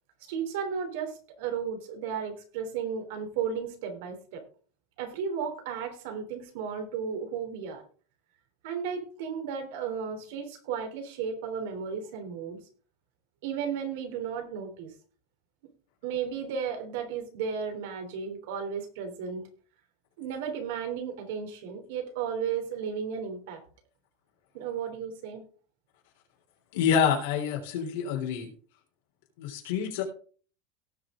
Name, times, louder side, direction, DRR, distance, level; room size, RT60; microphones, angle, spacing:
voice 1, 0.3-4.4 5.0-7.8 8.6-12.6 13.4-14.9 16.0-19.4 20.2-23.6 24.5-25.4, right 7 dB, 70° right, 5 dB, 3.3 m, -34 dB
voice 2, 26.7-28.5 29.4-30.0, left 8 dB, 75° left, 1 dB, 3.6 m, -27 dB
17.5 x 6.0 x 3.7 m, 0.42 s
supercardioid pair, 165°, 0 cm